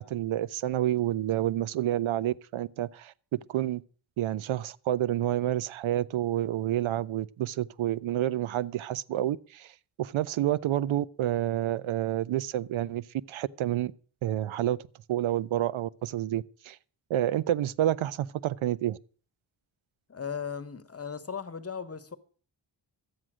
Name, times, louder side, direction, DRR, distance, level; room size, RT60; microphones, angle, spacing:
voice 1, 0.0-3.8 4.2-9.7 10.0-13.9 14.2-14.8 15.1-16.8 17.1-19.0, right 12 dB, 85° right, 0.6 m, -29 dB
voice 2, 20.1-22.2, left 6 dB, 30° left, 1.0 m, -37 dB
12.5 x 8.8 x 6.1 m
wide cardioid pair, 95°, 47 cm